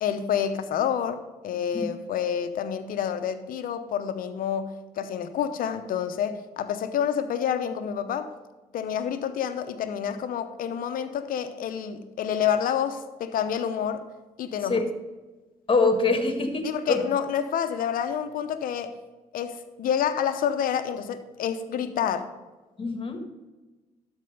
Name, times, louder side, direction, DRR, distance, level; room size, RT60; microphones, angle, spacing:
voice 1, 0.0-8.3 8.7-14.1 14.4-14.8 16.6-19.0 19.3-22.3, left 8 dB, 65° left, 9 dB, 0.8 m, -28 dB
voice 2, 15.7-17.0 22.8-23.2, left 3 dB, 35° left, 6 dB, 1.5 m, -24 dB
12.5 x 4.5 x 5.3 m, 1.2 s
supercardioid pair, 60°, 15 cm